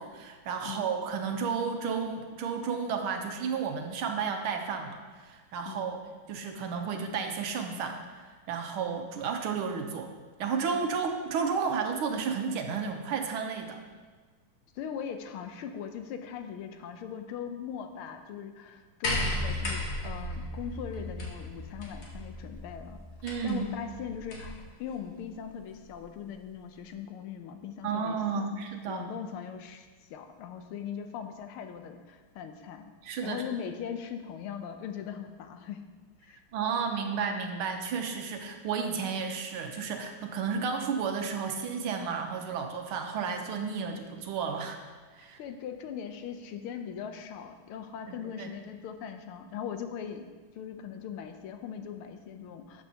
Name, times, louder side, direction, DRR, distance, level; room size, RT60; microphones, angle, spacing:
voice 1, 0.0-6.0 6.3-10.1 10.4-13.8 23.2-23.7 27.8-29.1 33.0-33.4 36.5-44.8 45.2-45.4 48.1-48.5, right 6 dB, 75° right, 4 dB, 1.7 m, -32 dB
voice 2, 5.6-6.0 14.7-23.0 23.4-28.6 28.9-32.9 33.2-35.8 36.2-36.4 45.4-50.3 50.5-52.8, left 8 dB, 80° left, 7 dB, 1.6 m, -40 dB
sound 1, 19.0-24.6 25.7-25.8, left 1 dB, 55° left, 2.1 m, -35 dB
12.5 x 7.8 x 2.8 m, 1.4 s
omnidirectional pair, 2.4 m